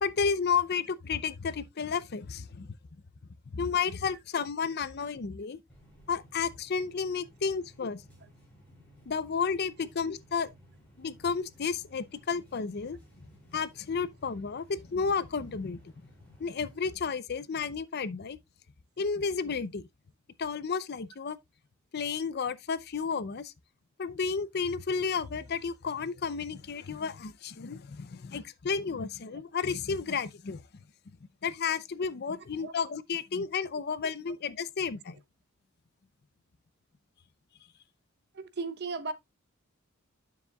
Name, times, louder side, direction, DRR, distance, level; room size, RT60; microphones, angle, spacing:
voice 1, 0.0-2.7 3.5-5.6 6.1-8.0 9.1-10.5 11.0-13.0 13.5-15.8 16.4-18.4 19.0-19.9 20.4-21.4 21.9-23.5 24.0-30.6 31.4-35.2, left 5 dB, 50° left, 0.5 m, -32 dB
sound 1, 5.7-16.9, equal, 5° left, 5.6 m, -57 dB
voice 2, 38.3-39.1, right 4 dB, 55° right, 0.8 m, -35 dB
9.6 x 7.0 x 2.3 m
head